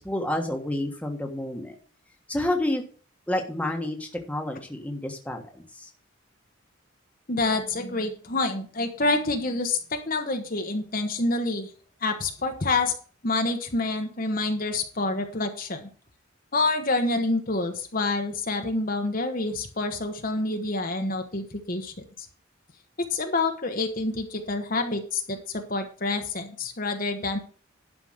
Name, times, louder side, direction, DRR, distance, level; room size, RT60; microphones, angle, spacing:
voice 1, 0.0-1.7 2.3-2.8 3.3-5.9, left 1 dB, 5° left, 2 dB, 1.4 m, -29 dB
voice 2, 7.3-11.7 12.0-12.9 13.2-15.9 16.5-22.3 23.0-27.4, left 3 dB, 45° left, 5 dB, 1.1 m, -27 dB
11.5 x 5.0 x 6.4 m, 0.42 s
head